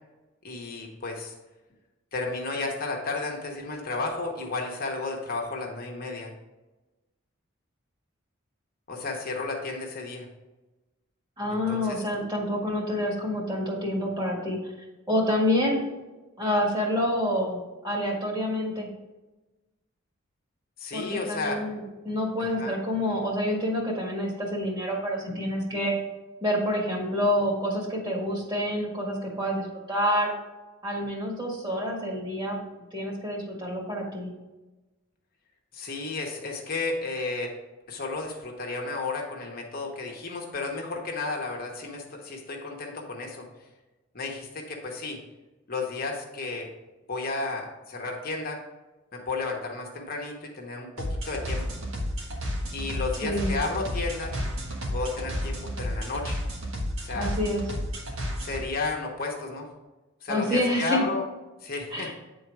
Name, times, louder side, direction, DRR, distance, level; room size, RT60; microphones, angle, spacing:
voice 1, 0.4-1.3 2.1-6.3 8.9-10.3 11.5-12.0 20.8-21.6 22.4-22.8 35.7-37.5 37.9-43.4 44.1-45.2 45.7-46.7 47.1-48.6 49.1-51.6 52.7-54.4 54.9-56.4 57.0-57.3 58.4-59.7 60.2-61.3 61.6-62.1, left 3 dB, 45° left, 0 dB, 1.0 m, -33 dB
voice 2, 11.4-14.7 15.1-15.8 16.4-18.9 20.9-25.9 26.4-30.3 30.8-32.6 32.9-34.3 53.2-53.6 57.1-57.6 60.3-61.0 61.9-62.1, left 1 dB, 20° right, -2 dB, 1.7 m, -28 dB
sound 1, 51.0-58.6, equal, 85° right, 1.5 m, -31 dB
8.9 x 3.9 x 4.7 m, 1.1 s
head